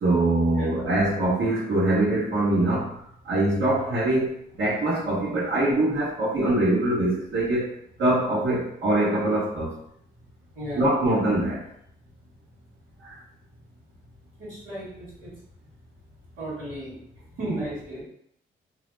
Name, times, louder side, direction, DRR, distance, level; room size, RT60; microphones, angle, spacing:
voice 1, 0.0-4.3 4.6-7.7 8.0-9.7 10.7-11.6 13.0-13.2, right 1 dB, 65° right, -11 dB, 1.2 m, -23 dB
voice 2, 14.4-15.3 16.3-17.0 17.4-18.0, right 1 dB, 90° right, -13 dB, 1.5 m, -34 dB
2.8 x 2.0 x 3.2 m, 0.69 s
cardioid pair, 70°, 20 cm